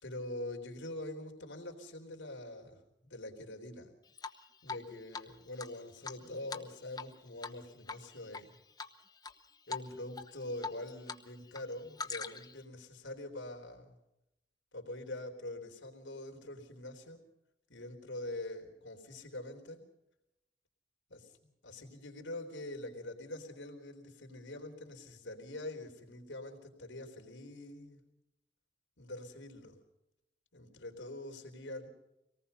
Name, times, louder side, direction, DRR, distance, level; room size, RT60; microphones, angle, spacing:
voice 1, 0.0-3.9 4.6-8.6 9.7-14.0 14.7-17.2 17.7-19.8 21.1-28.0 29.0-29.8 30.5-31.9, left 1 dB, 90° left, 3 dB, 3.6 m, -44 dB
Drip, 4.2-4.8 5.1-5.2 5.6-7.1 7.4-7.6 7.9-8.4 8.8-9.3 9.7-9.9 10.2-11.2 11.5-12.6, left 4 dB, 20° left, 0.9 m, -42 dB
25.5 x 19.0 x 5.6 m, 0.87 s
head